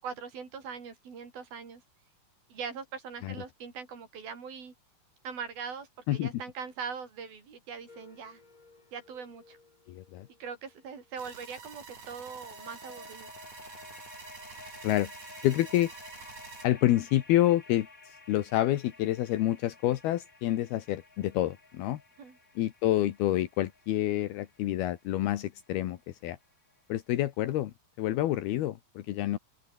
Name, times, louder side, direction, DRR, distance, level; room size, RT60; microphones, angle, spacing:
voice 1, 0.0-1.8 2.5-4.7 5.2-8.4 8.9-9.6 10.4-13.3 22.2-22.4, right 6 dB, 65° right, 7.1 m, -41 dB
sound 1, 7.9-11.1 11.9-26.8, left 3 dB, 25° left, 2.8 m, -54 dB
voice 2, 9.9-10.3 14.8-15.1 15.4-15.9 16.6-22.0 22.6-26.4 26.9-29.4, left 14 dB, 75° left, 3.1 m, -28 dB
sound 2, 11.2-16.7, right 5 dB, 45° right, 5.2 m, -48 dB
open air
omnidirectional pair, 4.6 m